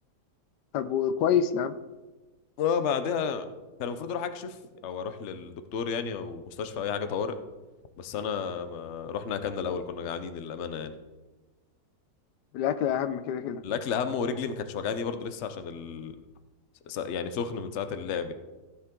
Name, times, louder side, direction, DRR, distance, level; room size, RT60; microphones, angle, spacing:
voice 1, 0.7-1.7 12.5-13.6, left 8 dB, 85° left, 13 dB, 1.2 m, -26 dB
voice 2, 2.6-3.5 3.8-4.6 4.8-7.4 8.0-10.9 13.6-16.2 16.9-18.3, left 6 dB, 55° left, 9 dB, 0.9 m, -32 dB
15.5 x 7.0 x 3.8 m, 1.2 s
omnidirectional pair, 1.8 m